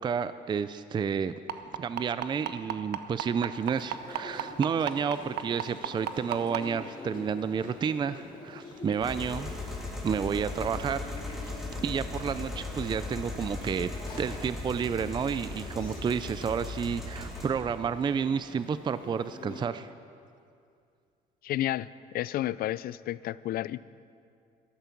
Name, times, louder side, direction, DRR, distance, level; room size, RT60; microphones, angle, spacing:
voice 1, 0.0-1.3 1.7-9.5 10.0-11.1 11.8-13.9 14.1-19.9, right 6 dB, 25° right, 13 dB, 0.4 m, -30 dB
sound 1, 1.5-6.6 7.6-7.7 8.1-8.2 8.7-8.8, right 12 dB, 75° right, 0.8 m, -31 dB
Chewing mastication, 3.5-19.6, left 2 dB, 30° left, 4.5 m, -46 dB
sound 2, 9.0-17.5, left 2 dB, ahead, 3.6 m, -38 dB
voice 2, 21.4-23.8, left 14 dB, 60° left, 18 dB, 0.4 m, -31 dB
14.0 x 13.0 x 6.0 m, 2.3 s
cardioid pair, 110°, 17 cm